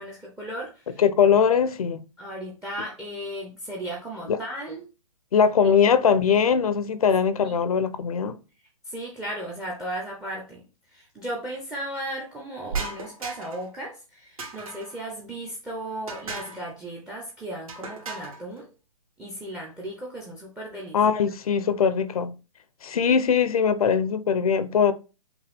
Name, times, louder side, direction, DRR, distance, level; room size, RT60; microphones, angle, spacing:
voice 1, 0.0-1.0 2.2-4.9 7.4-7.6 8.9-10.6 10.9-18.7 19.2-21.0, right 1 dB, 5° right, 0.4 m, -36 dB
voice 2, 1.0-2.0 4.3-4.4 5.3-8.4 20.9-22.3 22.8-24.9, left 7 dB, 75° left, 0.6 m, -21 dB
sound 1, 12.7-13.7 14.4-15.0 16.1-16.7 17.7-18.4, right 4 dB, 70° right, 1.8 m, -35 dB
5.8 x 2.2 x 3.4 m
hypercardioid pair, 150°, 19 cm